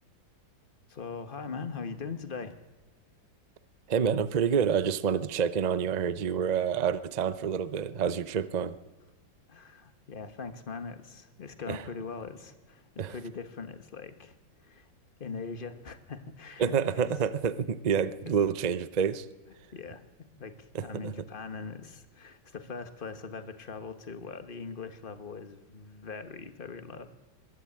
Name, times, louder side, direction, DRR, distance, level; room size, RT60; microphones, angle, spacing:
voice 1, 0.9-2.6 9.5-14.9 15.2-17.0 19.7-20.0 20.4-27.1, left 5 dB, 30° left, 9 dB, 1.4 m, -41 dB
voice 2, 3.9-8.8 11.7-11.8 13.0-13.1 16.6-19.3 20.7-21.1, right 7 dB, 85° right, 14 dB, 0.3 m, -28 dB
22.5 x 14.0 x 8.7 m, 1.3 s
omnidirectional pair, 2.0 m